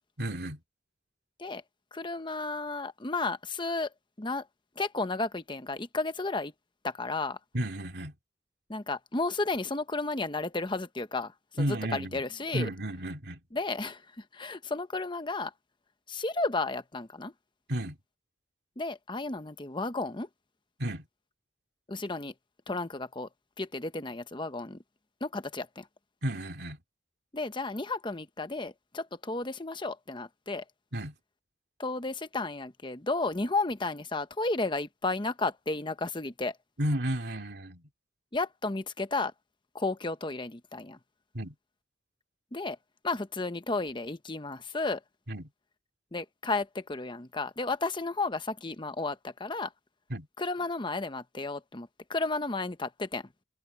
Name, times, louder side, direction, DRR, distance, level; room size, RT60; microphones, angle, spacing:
voice 1, 0.2-0.6 7.5-8.2 11.6-12.2 12.5-13.4 17.7-18.0 20.8-21.1 26.2-26.8 30.9-31.1 36.8-37.9 41.3-41.5 45.3-45.5 50.1-50.3, right 1 dB, 60° right, 2.9 m, -32 dB
voice 2, 1.9-3.9 4.2-4.4 4.8-6.5 6.8-7.4 8.7-11.3 11.6-11.7 11.9-12.7 13.5-14.0 14.3-15.5 16.1-17.3 18.8-20.3 21.9-22.3 22.7-23.3 23.6-24.8 25.2-25.8 27.3-30.6 31.8-36.5 38.3-39.3 39.7-41.0 42.5-42.8 43.0-45.0 46.1-49.7 50.4-53.2, left 3 dB, 25° left, 1.0 m, -33 dB
head